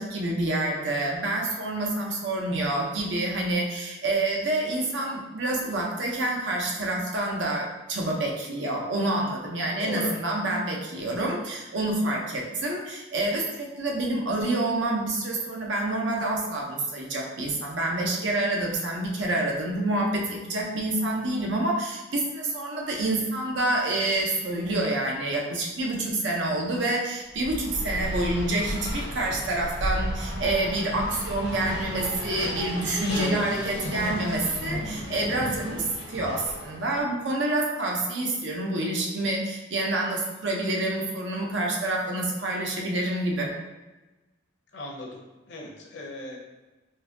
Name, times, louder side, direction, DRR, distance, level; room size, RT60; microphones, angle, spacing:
voice 1, 0.0-43.5, right 2 dB, 75° right, -1 dB, 0.7 m, -27 dB
voice 2, 9.8-10.1 33.1-33.4 44.7-45.2 45.5-46.4, left 2 dB, 65° left, -1 dB, 0.7 m, -36 dB
Race car auto racing, 27.3-37.0, equal, 90° left, 0.9 m, -33 dB
3.9 x 2.6 x 2.6 m, 1.1 s
head